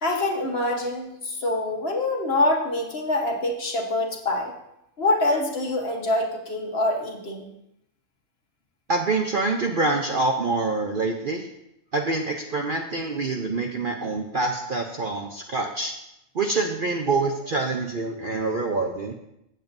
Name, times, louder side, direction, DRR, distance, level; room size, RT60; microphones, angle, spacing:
voice 1, 0.0-4.5 5.0-7.5, left 2 dB, 45° left, 2 dB, 1.4 m, -25 dB
voice 2, 8.9-11.5 11.9-15.9 16.3-19.1, right 3 dB, 45° right, 2 dB, 0.7 m, -26 dB
16.0 x 7.9 x 2.6 m, 0.82 s
omnidirectional pair, 1.5 m